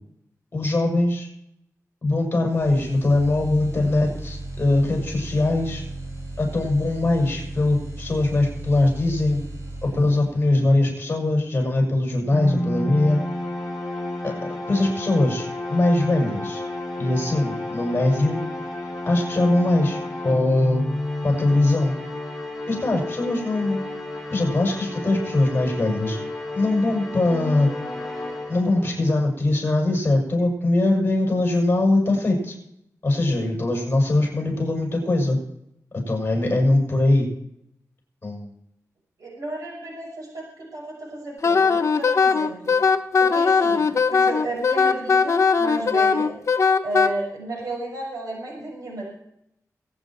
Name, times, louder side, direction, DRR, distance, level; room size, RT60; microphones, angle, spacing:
voice 1, 0.5-1.3 2.0-5.8 6.4-9.4 9.8-13.2 14.2-14.3 14.7-16.6 17.0-18.4 19.1-20.8 21.2-21.9 22.7-23.8 24.3-26.2 26.5-27.7 28.5-32.6 33.0-35.4 36.1-37.3 38.2-38.5, left 2 dB, 35° left, 0 dB, 6.2 m, -21 dB
sound 1, 2.5-10.5, right 2 dB, 55° right, 6.0 m, -36 dB
sound 2, 12.3-29.1, left 1 dB, ahead, 5.8 m, -31 dB
voice 2, 39.2-42.8 43.2-46.4 46.8-49.0, right 2 dB, 75° right, -2 dB, 6.4 m, -33 dB
Wind instrument woodwind instrument, 41.4-47.1, left 5 dB, 55° left, 1.0 m, -19 dB
23.5 x 9.0 x 4.6 m, 0.78 s
wide cardioid pair, 125°, 6 cm